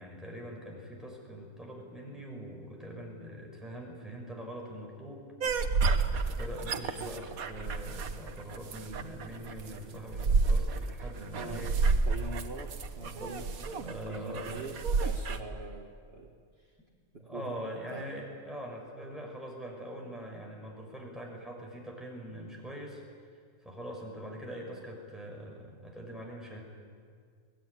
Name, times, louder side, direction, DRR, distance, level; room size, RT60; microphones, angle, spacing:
voice 1, 0.0-5.3 5.6-5.9 6.2-11.8 13.0-13.4 13.6-15.1 17.2-23.0 23.6-26.6, equal, ahead, -1 dB, 5.5 m, -43 dB
sound 1, 5.4-15.4, right 4 dB, 80° right, 1.6 m, -30 dB
voice 2, 11.4-11.7 12.1-16.8 17.1-18.1, right 3 dB, 45° right, 0 dB, 1.9 m, -44 dB
22.5 x 19.0 x 9.9 m, 2.1 s
omnidirectional pair, 1.5 m